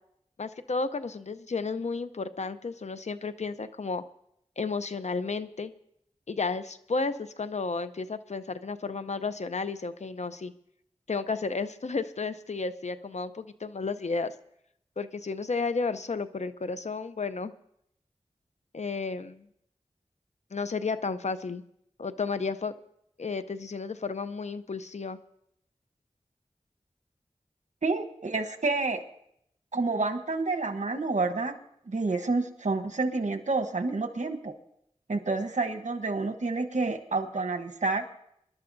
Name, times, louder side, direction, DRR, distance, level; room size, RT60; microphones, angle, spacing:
voice 1, 0.4-4.0 4.6-5.7 6.3-10.5 11.1-14.3 15.0-17.5 18.7-19.5 20.5-21.6 22.0-22.7 23.2-25.2, left 4 dB, 70° left, 12 dB, 0.6 m, -32 dB
voice 2, 27.8-29.0 29.7-31.5 31.9-34.5 35.1-38.0, right 3 dB, 80° right, 6 dB, 1.1 m, -29 dB
25.5 x 11.5 x 2.6 m, 0.74 s
wide cardioid pair, 50°, 12 cm